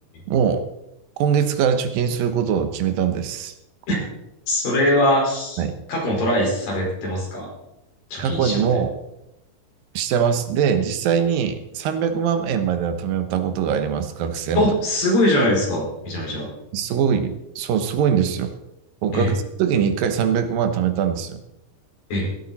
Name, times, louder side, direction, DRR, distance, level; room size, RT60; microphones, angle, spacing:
voice 1, 0.3-0.6 1.2-3.5 5.6-5.8 8.2-8.9 9.9-14.7 16.7-18.5 19.0-21.4, right 7 dB, 85° right, 9 dB, 2.9 m, -22 dB
voice 2, 4.5-5.6 5.9-7.5 8.1-8.7 14.6-16.5 19.1-19.3 22.1-22.3, left 1 dB, 80° left, -2 dB, 6.7 m, -21 dB
16.0 x 13.0 x 4.2 m, 0.88 s
omnidirectional pair, 3.9 m